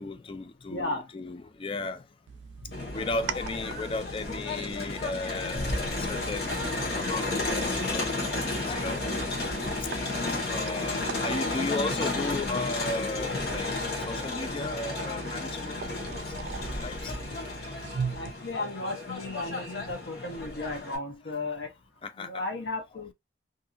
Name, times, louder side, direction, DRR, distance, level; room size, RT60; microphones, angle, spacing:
voice 1, 0.0-2.0 2.9-9.0 10.5-15.8 16.1-16.3 16.8-17.1 22.0-22.4, left 2 dB, 30° left, 0.4 m, -35 dB
voice 2, 0.7-1.1 2.6-2.7 18.1-21.7 22.2-23.1, left 2 dB, 85° left, 0.7 m, -35 dB
sound 1, 2.3-18.3, right 6 dB, 85° right, 0.3 m, -41 dB
Crowd, 2.7-21.0, left 3 dB, 65° left, 1.0 m, -32 dB
sound 2, 5.5-16.0, right 1 dB, 5° right, 0.7 m, -46 dB
2.7 x 2.6 x 2.4 m
head